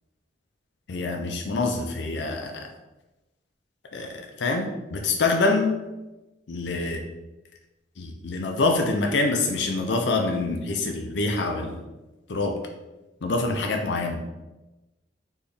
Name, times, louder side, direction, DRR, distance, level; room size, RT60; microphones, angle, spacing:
voice 1, 0.9-2.7 3.9-5.8 6.5-7.0 8.0-11.8 12.3-12.6 13.2-14.2, left 3 dB, 85° left, 3 dB, 0.6 m, -25 dB
4.3 x 3.5 x 3.4 m, 1.0 s
head